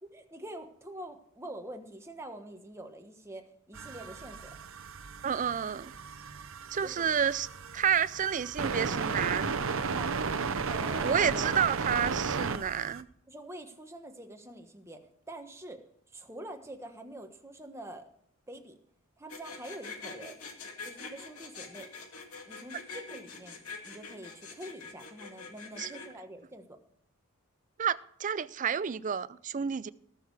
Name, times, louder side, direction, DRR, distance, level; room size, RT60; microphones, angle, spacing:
voice 1, 0.0-4.5 6.8-7.1 9.9-10.1 10.7-11.5 13.3-15.0 15.3-15.8 16.1-18.1 18.5-18.7 19.2-20.4 20.8-21.9 22.5-23.6 23.8-26.6, right 1 dB, 15° right, 1.3 m, -45 dB
sound 1, 3.7-13.0, right 5 dB, 65° right, 0.7 m, -34 dB
voice 2, 5.2-5.9 6.7-7.5 7.7-9.5 11.0-13.1 25.8-25.9 27.8-29.9, right 7 dB, 35° right, 0.4 m, -30 dB
sound 2, 19.3-26.1, left 4 dB, 90° left, 2.4 m, -44 dB
19.5 x 6.6 x 4.7 m
head